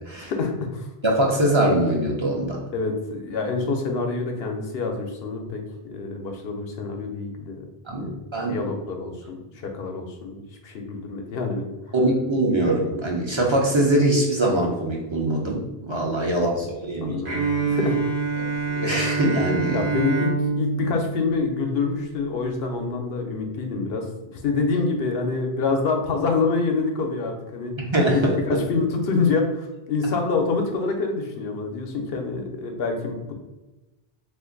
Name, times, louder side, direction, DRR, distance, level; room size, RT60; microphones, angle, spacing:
voice 1, 0.2-0.9 2.7-7.6 7.9-8.2 8.5-11.7 17.0-18.0 19.7-24.1 24.3-27.7 28.1-33.3, left 4 dB, 75° left, 3 dB, 0.9 m, -26 dB
voice 2, 1.0-2.6 7.9-8.7 11.9-17.2 18.7-19.8 27.9-28.3, right 1 dB, 35° right, -2 dB, 0.5 m, -22 dB
Bowed string instrument, 17.3-22.1, right 4 dB, 60° right, 0.8 m, -26 dB
2.5 x 2.5 x 3.8 m, 1.1 s
omnidirectional pair, 1.1 m